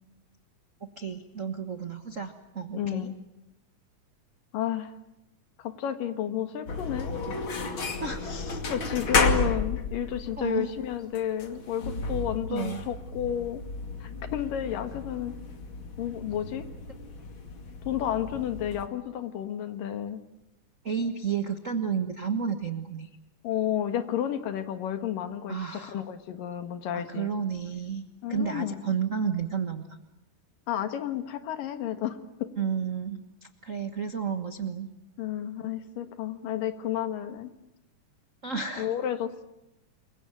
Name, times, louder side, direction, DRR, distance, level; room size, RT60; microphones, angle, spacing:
voice 1, 1.0-3.1 7.3-7.4 8.0-8.6 10.4-10.7 12.5-12.8 20.8-23.1 25.5-26.0 26.9-28.0 28.3-29.8 32.6-33.2 33.6-34.9 38.4-38.9, right 6 dB, 90° right, 7 dB, 0.6 m, -31 dB
voice 2, 2.7-3.1 4.5-4.9 5.6-7.1 8.7-13.6 14.0-15.4 16.0-16.7 17.9-20.2 23.4-27.3 28.2-28.8 30.7-32.5 35.2-37.5 38.8-39.4, left 10 dB, 80° left, 9 dB, 3.2 m, -31 dB
sound 1, 6.7-18.9, left 3 dB, 40° left, 2.8 m, -32 dB
28.0 x 23.0 x 9.1 m, 0.89 s
omnidirectional pair, 3.8 m